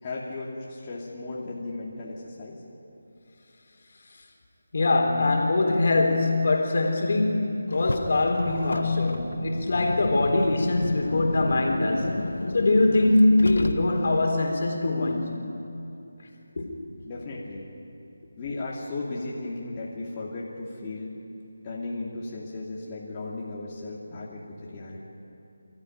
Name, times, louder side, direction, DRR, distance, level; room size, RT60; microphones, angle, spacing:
voice 1, 0.0-2.6 17.0-17.7 18.4-21.1 21.6-25.0, left 2 dB, 25° left, -6 dB, 2.8 m, -35 dB
voice 2, 4.7-12.3 12.5-15.4 16.6-16.7, left 2 dB, 55° left, 1 dB, 3.8 m, -23 dB
Car, 7.7-14.2, left 2 dB, 80° left, 1.3 m, -32 dB
26.0 x 14.0 x 9.2 m, 2.8 s
figure-of-eight pair, 165°, 0 cm